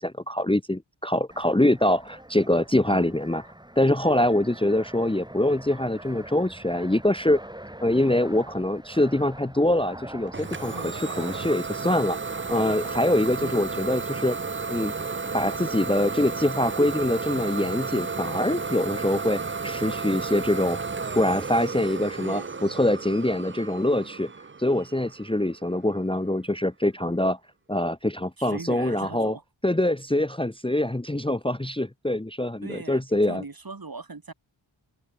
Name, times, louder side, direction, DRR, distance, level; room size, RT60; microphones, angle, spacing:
voice 1, 0.0-3.4 3.8-7.4 7.8-12.2 12.5-14.4 14.7-14.9 15.3-20.8 21.2-24.3 24.6-27.4 27.7-29.4 29.6-33.4, left 1 dB, 10° left, 1.0 m, -24 dB
Fixed-wing aircraft airplane, 1.3-16.6, right 1 dB, 10° right, 2.4 m, -45 dB
Idling / Domestic sounds home sounds, 10.3-25.9, right 4 dB, 25° right, 0.6 m, -33 dB
voice 2, 10.7-11.1 13.4-13.8 22.2-22.6 28.4-29.4 32.6-33.0 33.3-34.3, right 3 dB, 45° right, 2.8 m, -39 dB
open air
wide cardioid pair, 75°, 48 cm